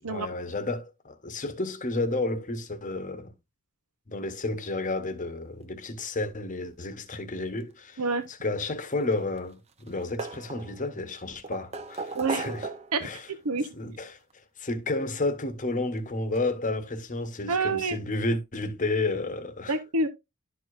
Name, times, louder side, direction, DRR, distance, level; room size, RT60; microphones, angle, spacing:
voice 1, 0.0-3.3 4.1-8.0 8.3-12.7 13.0-13.3 13.7-14.2 14.6-19.8, left 2 dB, 35° left, 1.0 m, -31 dB
sound 1, 8.8-9.5 9.8-10.9 11.4-13.1 14.3-14.4 15.9-16.0 16.4-16.5, right 3 dB, 30° right, 0.8 m, -36 dB
voice 2, 12.1-12.5 12.9-13.7 17.5-18.0 19.7-20.1, right 3 dB, 85° right, 0.9 m, -28 dB
12.0 x 4.7 x 2.5 m
head